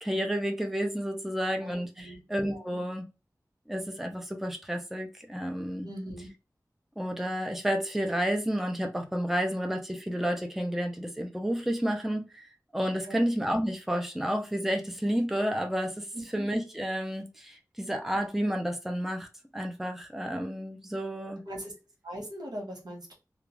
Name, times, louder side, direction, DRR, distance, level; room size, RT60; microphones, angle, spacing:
voice 1, 0.0-3.0 3.7-5.9 7.0-12.5 12.7-16.1 16.3-19.3 19.5-21.4, equal, 5° right, 3 dB, 0.5 m, -31 dB
voice 2, 1.6-2.2 2.5-2.9 5.8-6.3 13.1-13.2 16.1-16.5 21.4-21.7 22.0-23.1, equal, 85° right, -1 dB, 1.2 m, -40 dB
2.5 x 2.3 x 3.1 m, 0.29 s
wide cardioid pair, 70°, 7 cm